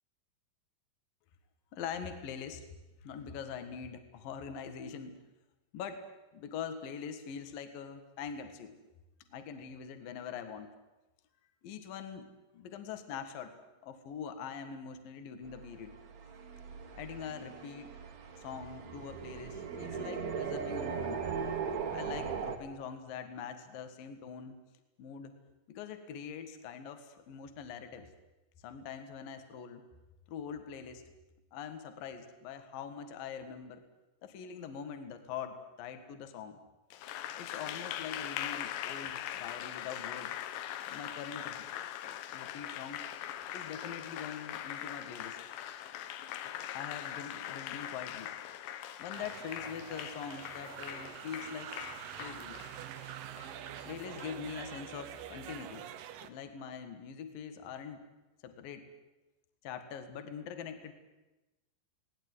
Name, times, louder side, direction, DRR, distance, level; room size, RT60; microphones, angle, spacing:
voice 1, 1.7-2.6 3.0-5.2 5.7-6.0 6.3-8.8 9.3-10.7 11.6-12.3 12.5-13.5 13.8-15.9 16.9-18.0 18.4-21.2 21.9-24.6 25.0-25.3 25.7-28.1 28.6-29.8 30.3-31.0 31.5-33.9 34.2-36.6 37.4-40.3 40.9-41.7 42.3-43.1 43.5-45.4 46.7-48.3 49.0-51.9 52.2-52.6 53.9-55.9 56.2-58.0 58.4-58.9 59.6-60.9, left 7 dB, 60° left, 8 dB, 3.1 m, -43 dB
sound 1, 15.4-22.6, right 6 dB, 50° right, 2.5 m, -39 dB
Applause, 36.9-54.7, left 11 dB, 80° left, 3.3 m, -42 dB
sound 2, 49.1-56.3, right 10 dB, 70° right, 2.4 m, -46 dB
20.0 x 18.5 x 9.8 m, 1.1 s
omnidirectional pair, 5.0 m